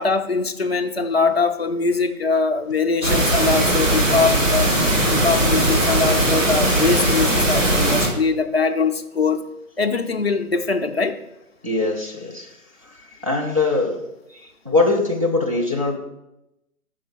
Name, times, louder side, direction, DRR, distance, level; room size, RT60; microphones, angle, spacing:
voice 1, 0.0-4.7 5.1-9.4 9.8-11.2, left 4 dB, 45° left, 5 dB, 0.5 m, -22 dB
sound 1, 3.0-8.1, right 1 dB, 55° right, 2.0 m, -19 dB
voice 2, 11.6-12.5 12.8-12.9 13.2-14.0 14.3-16.0, left 3 dB, 25° right, -3 dB, 0.6 m, -22 dB
6.1 x 4.5 x 6.2 m, 0.88 s
hypercardioid pair, 170°, 45 cm